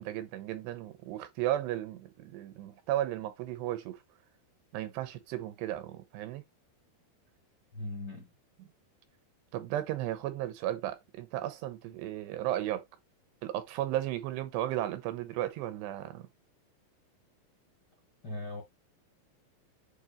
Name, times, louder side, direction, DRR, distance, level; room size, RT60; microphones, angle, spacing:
voice 1, 0.0-4.0 4.7-6.4 9.5-12.8 13.4-16.3, right 13 dB, 85° right, 3.0 m, -34 dB
voice 2, 7.7-8.3 18.2-18.6, left 2 dB, 50° left, 1.2 m, -39 dB
8.1 x 2.8 x 4.2 m
omnidirectional pair, 5.0 m